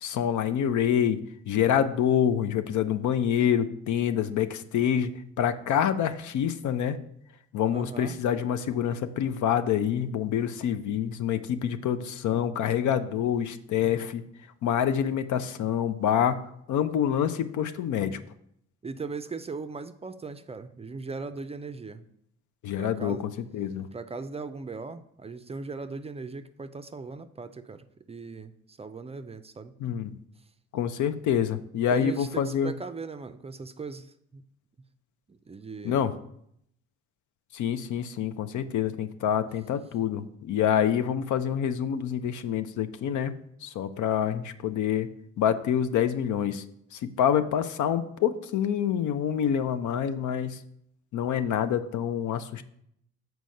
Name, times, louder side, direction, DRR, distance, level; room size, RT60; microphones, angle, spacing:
voice 1, 0.0-1.2 1.5-5.1 5.4-7.0 7.5-14.2 14.6-16.4 16.7-18.2 22.6-23.9 29.8-30.1 30.7-32.7 35.8-36.1 37.5-45.1 45.4-46.6 46.9-50.6 51.1-52.6, left 9 dB, 75° left, 11 dB, 0.6 m, -26 dB
voice 2, 7.7-8.2 18.8-22.0 22.8-23.2 23.9-29.7 31.9-34.4 35.3-36.1, right 4 dB, 20° right, 9 dB, 0.4 m, -39 dB
6.2 x 4.6 x 5.2 m, 0.72 s
cardioid pair, 90°, 30 cm